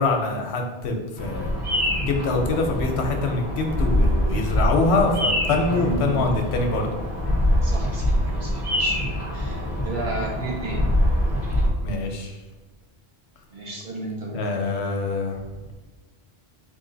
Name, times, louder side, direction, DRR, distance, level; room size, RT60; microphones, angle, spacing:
voice 1, 0.0-1.6 2.1-6.9 11.8-12.4 14.3-15.4, left 3 dB, 85° left, 3 dB, 1.0 m, -24 dB
Bird vocalization bird call bird song, 1.2-11.7, left 1 dB, 25° right, 0.9 m, -24 dB
voice 2, 5.7-6.2 7.6-9.0 9.3-10.8 13.5-14.4, right 2 dB, 55° right, -2 dB, 0.8 m, -32 dB
3.8 x 2.6 x 3.8 m, 1.2 s
omnidirectional pair, 1.1 m